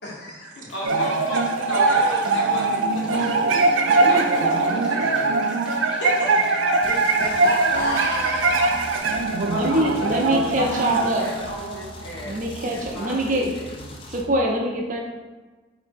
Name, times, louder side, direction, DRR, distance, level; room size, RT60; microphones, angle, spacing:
voice 1, 0.0-0.7 6.3-6.4 6.8-8.8, left 1 dB, 60° left, -5 dB, 1.2 m, -30 dB
voice 2, 0.7-3.4 3.8-5.4 5.8-6.5 9.5-12.4 12.6-14.0, equal, 85° left, -5 dB, 1.2 m, -34 dB
sound 1, 0.7-9.0, equal, 5° right, 0.7 m, -44 dB
sound 2, 0.8-12.4, right 3 dB, 85° right, 0.4 m, -22 dB
voice 3, 4.0-4.8 9.4-11.3 12.2-13.5 14.1-15.0, right 1 dB, 45° right, 0 dB, 0.6 m, -24 dB
sound 3, 6.8-14.2, left 1 dB, 30° left, 0.4 m, -40 dB
3.8 x 2.7 x 3.6 m, 1.3 s
head